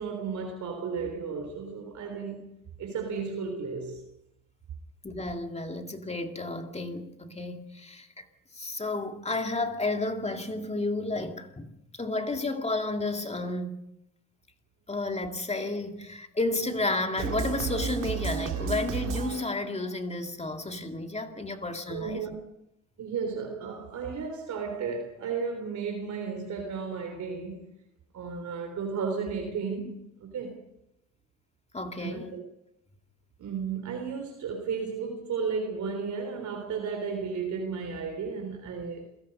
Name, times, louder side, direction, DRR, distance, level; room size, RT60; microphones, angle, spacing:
voice 1, 0.0-2.5 2.8-4.0 21.9-22.4 23.0-27.7 28.1-30.6 32.0-32.4 33.4-39.1, right 5 dB, 70° right, 3.7 m, -34 dB
voice 2, 5.0-8.2 8.5-13.8 14.9-22.2 31.7-32.3, left 2 dB, 20° left, 2.3 m, -32 dB
sound 1, 17.2-19.8, right 7 dB, 85° right, 2.1 m, -32 dB
27.5 x 17.5 x 5.4 m
cardioid pair, 90°, 30 cm